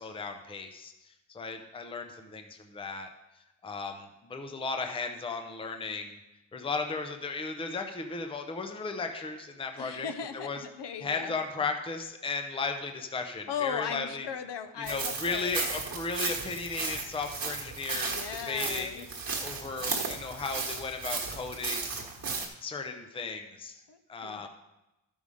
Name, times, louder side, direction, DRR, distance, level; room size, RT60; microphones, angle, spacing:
voice 1, 0.0-3.1 3.6-6.2 6.5-10.1 10.3-10.6 11.0-14.3 14.8-18.2 18.5-19.0 19.4-22.0 22.6-23.8 24.1-24.5, left 4 dB, 10° left, 6 dB, 0.6 m, -35 dB
voice 2, 9.8-11.4 13.5-15.6 17.9-19.1 23.9-24.5, left 7 dB, 60° left, 8 dB, 0.8 m, -37 dB
sound 1, 14.9-22.5, right 4 dB, 45° right, 1.4 m, -35 dB
12.5 x 5.4 x 4.9 m, 0.96 s
wide cardioid pair, 160°, 47 cm